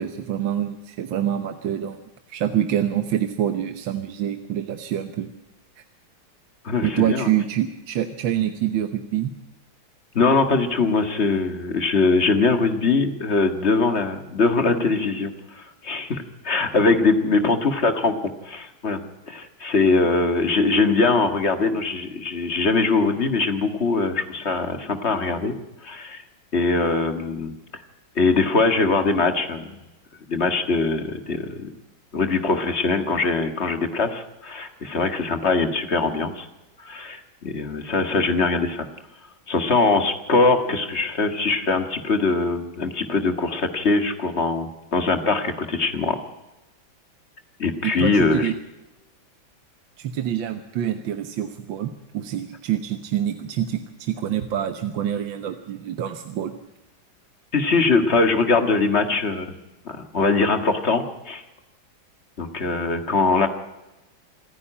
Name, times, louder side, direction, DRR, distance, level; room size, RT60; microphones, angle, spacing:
voice 1, 0.0-2.0 2.3-5.3 5.8-5.9 6.8-9.3 47.8-48.6 50.0-56.6, right 10 dB, 75° right, 8 dB, 1.8 m, -26 dB
voice 2, 6.6-7.3 10.2-19.0 19.3-25.5 25.8-26.2 26.5-27.5 28.2-29.6 30.3-31.7 32.1-36.5 36.8-38.9 39.5-46.2 47.6-48.5 57.5-59.5 59.9-61.4 62.4-63.5, left 3 dB, 35° left, 8 dB, 1.8 m, -22 dB
27.0 x 9.9 x 9.9 m, 1.0 s
omnidirectional pair, 2.2 m